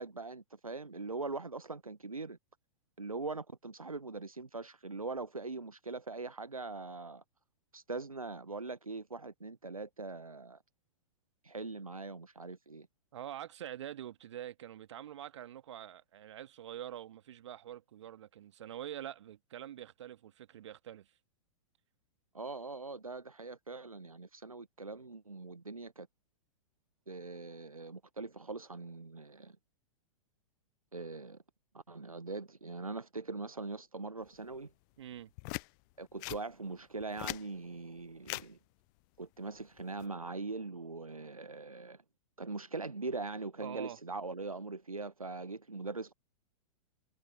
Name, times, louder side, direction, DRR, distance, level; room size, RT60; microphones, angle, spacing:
voice 1, 0.0-2.4 3.0-7.2 7.7-10.6 11.4-12.9 22.3-26.1 27.1-29.6 30.9-31.4 31.9-34.7 36.0-38.6 39.2-42.0 42.4-46.1, right 3 dB, 85° right, 1.0 m, -42 dB
voice 2, 13.1-21.1 35.0-35.3 43.6-44.0, right 11 dB, 55° right, 1.9 m, -45 dB
sound 1, 35.4-35.7 36.2-36.4 37.0-37.4 38.2-38.5 39.8-40.0, left 32 dB, 35° left, 0.7 m, -40 dB
figure-of-eight pair, 105°, 17 cm